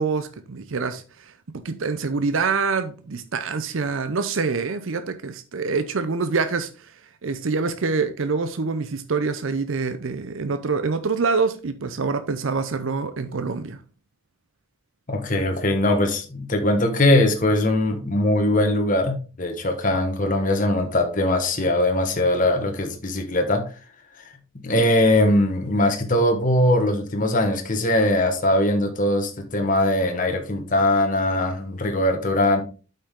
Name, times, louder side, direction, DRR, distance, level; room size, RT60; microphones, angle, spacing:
voice 1, 0.0-6.9 7.2-13.8, right 4 dB, 65° right, 0.6 m, -26 dB
voice 2, 15.1-23.6 24.2-24.3 24.6-32.6, left 1 dB, 40° left, 1.2 m, -21 dB
8.6 x 5.5 x 3.6 m
head